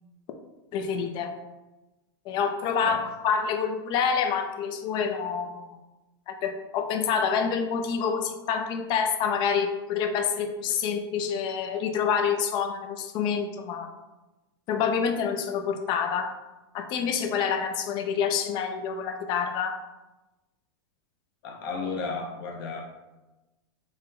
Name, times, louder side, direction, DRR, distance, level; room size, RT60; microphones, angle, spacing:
voice 1, 0.7-1.3 2.3-3.0 3.2-5.8 6.3-13.9 14.7-16.3 16.7-19.8, left 6 dB, 35° left, 6 dB, 0.4 m, -27 dB
voice 2, 21.4-22.8, left 4 dB, 60° left, 0 dB, 0.9 m, -33 dB
3.8 x 2.1 x 4.0 m, 1.1 s
supercardioid pair, 140°, 14 cm